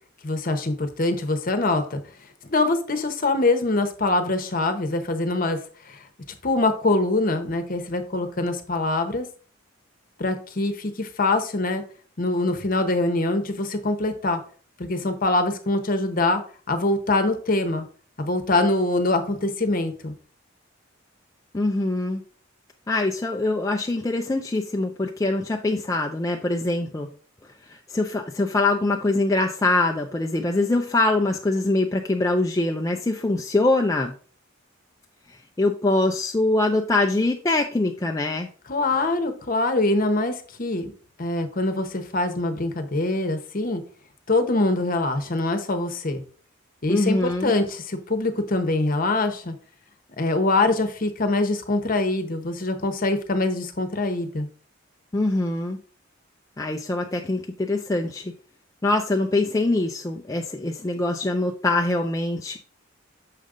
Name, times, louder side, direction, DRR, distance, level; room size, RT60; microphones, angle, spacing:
voice 1, 0.2-2.0 2.4-5.6 5.9-6.0 6.4-9.3 10.2-11.8 12.2-14.4 14.8-16.4 16.7-17.9 18.2-20.1 38.7-40.9 41.2-43.8 44.3-46.2 46.8-49.5 50.2-54.5, left 2 dB, 45° left, 8 dB, 0.9 m, -24 dB
voice 2, 21.5-22.2 22.9-27.1 27.7-34.1 35.6-38.5 46.9-47.5 55.1-55.8 56.6-58.3 58.8-62.6, left 2 dB, 15° left, 2 dB, 0.4 m, -23 dB
6.5 x 5.1 x 3.7 m, 0.41 s
head